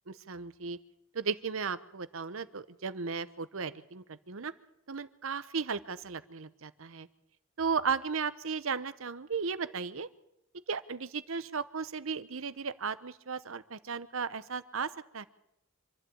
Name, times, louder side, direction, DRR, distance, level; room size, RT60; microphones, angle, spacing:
voice 1, 0.1-0.8 1.1-4.5 4.9-7.1 7.6-10.1 10.7-15.3, right 5 dB, 65° right, 14 dB, 0.9 m, -35 dB
26.0 x 12.0 x 8.6 m, 0.83 s
head